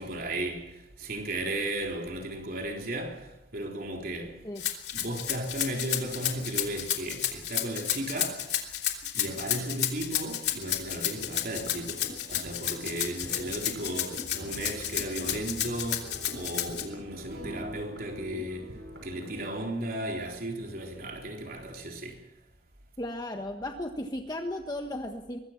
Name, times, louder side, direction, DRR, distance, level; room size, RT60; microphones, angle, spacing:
voice 1, 0.0-4.4 4.9-8.5 9.1-18.7 19.0-22.2, right 1 dB, 55° right, 4.0 m, -35 dB
Rattle (instrument), 4.6-16.8, left 12 dB, 70° left, 3.2 m, -31 dB
sound 1, 11.2-19.5, equal, 80° right, 6.8 m, -44 dB
voice 2, 23.0-25.4, left 1 dB, 25° left, 1.4 m, -35 dB
24.5 x 21.0 x 6.0 m
head